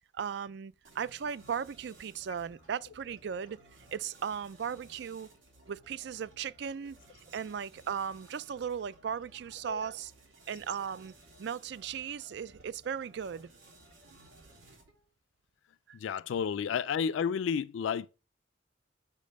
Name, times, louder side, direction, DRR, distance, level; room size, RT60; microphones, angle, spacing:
voice 1, 0.1-3.6 3.9-5.3 5.7-7.0 7.3-10.1 10.5-11.1 11.4-13.5 15.9-16.0, right 7 dB, 60° right, 0.3 m, -37 dB
sound 1, 0.8-15.1, right 1 dB, 80° right, 2.8 m, -58 dB
voice 2, 15.9-18.1, left 7 dB, 85° left, 0.3 m, -31 dB
6.5 x 5.2 x 5.2 m
head